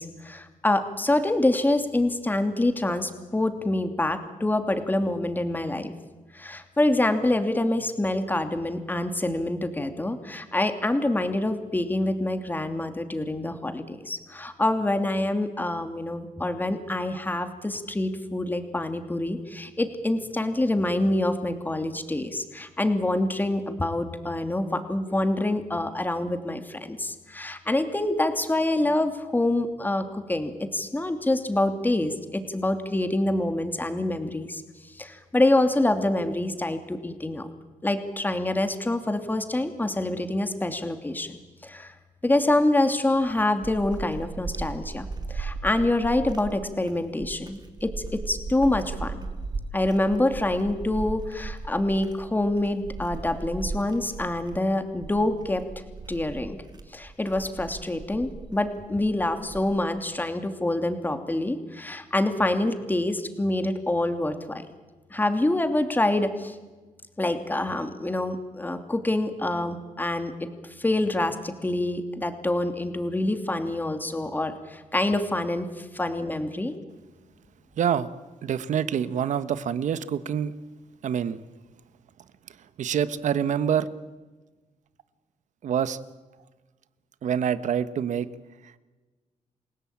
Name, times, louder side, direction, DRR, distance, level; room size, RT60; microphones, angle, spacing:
voice 1, 0.0-5.9 6.3-34.6 35.0-37.5 37.8-41.9 42.2-49.2 49.7-55.6 56.1-56.6 56.9-64.6 65.1-66.5 67.2-70.3 70.8-76.7, left 1 dB, 15° left, 7 dB, 2.8 m, -26 dB
sound 1, 43.1-60.0, right 3 dB, 35° right, 2.4 m, -37 dB
voice 2, 77.8-78.1 78.4-80.5 81.0-81.4 82.8-83.9 85.6-86.0 87.2-88.3, right 8 dB, 70° right, 14 dB, 1.3 m, -26 dB
28.5 x 17.0 x 8.9 m, 1.2 s
cardioid pair, 95°, 13 cm